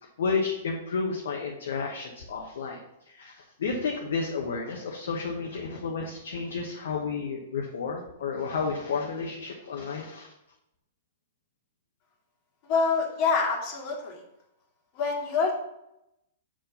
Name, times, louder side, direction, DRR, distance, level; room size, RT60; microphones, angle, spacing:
voice 1, 0.2-2.8 3.1-10.3, left 5 dB, 65° left, 0 dB, 1.1 m, -31 dB
voice 2, 12.6-14.2 14.9-15.6, left 4 dB, 45° left, 0 dB, 2.2 m, -26 dB
7.6 x 4.5 x 5.5 m, 0.87 s
hypercardioid pair, 110°, 0 cm